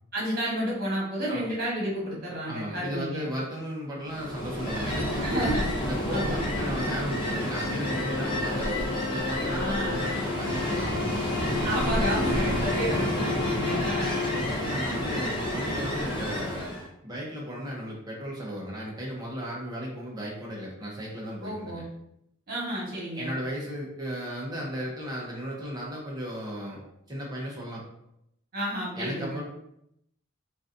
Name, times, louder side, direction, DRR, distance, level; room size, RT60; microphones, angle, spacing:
voice 1, 0.1-3.3 5.2-5.8 6.1-6.5 9.4-10.0 11.6-14.2 21.4-21.9 22.5-23.3 28.5-29.4, right 1 dB, 45° right, -5 dB, 1.4 m, -31 dB
voice 2, 2.5-5.5 5.8-11.5 14.2-16.8 17.0-21.8 23.2-27.8 29.0-29.4, equal, 20° right, -4 dB, 0.9 m, -35 dB
Ocean, 4.1-16.9, equal, 25° left, 1.0 m, -29 dB
sound 1, 7.5-14.8, left 7 dB, 60° left, 0.6 m, -35 dB
3.9 x 2.5 x 2.6 m, 0.76 s
head